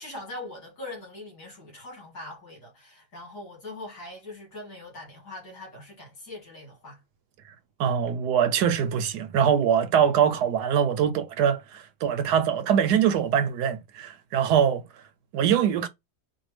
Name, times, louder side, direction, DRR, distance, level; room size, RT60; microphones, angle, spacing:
voice 1, 0.0-7.0, left 2 dB, 70° left, 2.6 m, -41 dB
voice 2, 7.8-14.8 15.3-15.9, right 8 dB, 75° right, 1.1 m, -23 dB
4.4 x 2.4 x 3.2 m
omnidirectional pair, 1.8 m